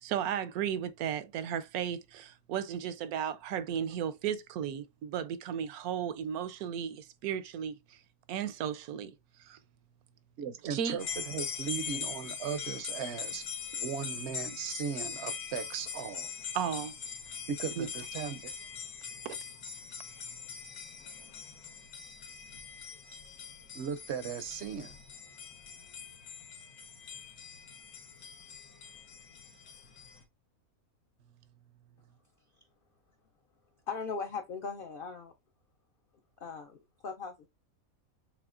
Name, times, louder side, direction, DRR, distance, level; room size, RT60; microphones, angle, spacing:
voice 1, 0.0-8.0 8.3-9.1 9.4-9.6 10.7-11.0 16.5-16.9 17.8-17.9, right 9 dB, 85° right, 1.1 m, -35 dB
voice 2, 10.4-13.4 13.7-16.3 17.5-18.5 23.7-24.9, right 7 dB, 65° right, 0.7 m, -37 dB
sound 1, 11.0-30.2, left 6 dB, 85° left, 1.5 m, -42 dB
voice 3, 33.9-35.3 36.4-37.5, left 5 dB, 65° left, 0.5 m, -39 dB
6.9 x 3.0 x 2.4 m
omnidirectional pair, 1.5 m